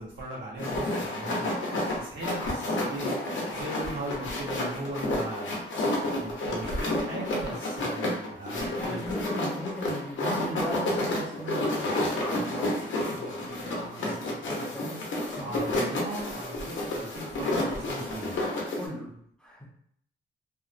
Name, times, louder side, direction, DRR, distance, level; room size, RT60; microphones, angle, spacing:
voice 1, 0.0-1.5 1.9-3.1 3.5-5.5 6.2-9.1 15.4-18.5, right 1 dB, 85° right, -5 dB, 1.0 m, -37 dB
sound 1, 0.6-18.9, left 1 dB, 80° left, 0.7 m, -30 dB
voice 2, 8.7-15.1 15.4-15.9 18.8-19.6, equal, 5° left, -3 dB, 0.4 m, -38 dB
2.8 x 2.1 x 2.5 m, 0.66 s
wide cardioid pair, 180°, 19 cm